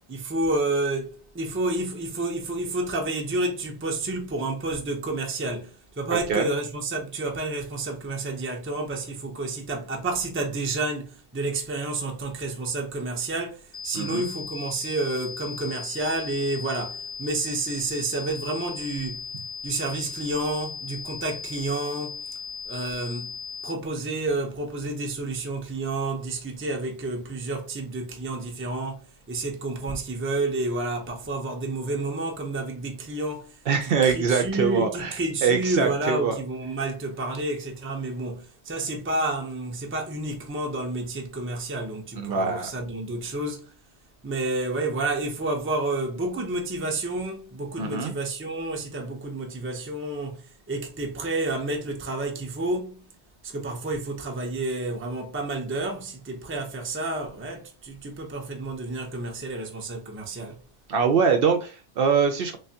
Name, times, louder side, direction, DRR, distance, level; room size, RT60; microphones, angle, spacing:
voice 1, 0.0-19.3 19.6-22.2 22.7-23.3 23.6-33.5 34.0-43.7 44.2-53.1 53.4-60.6, right 2 dB, 15° right, 0.5 m, -30 dB
voice 2, 6.1-6.5 13.9-14.3 33.7-35.2 35.4-36.4 42.2-42.7 47.8-48.1 60.9-62.6, right 6 dB, 65° right, 0.7 m, -23 dB
sound 1, 13.7-23.7, left 5 dB, 55° left, 0.5 m, -37 dB
3.3 x 3.2 x 2.7 m
omnidirectional pair, 1.1 m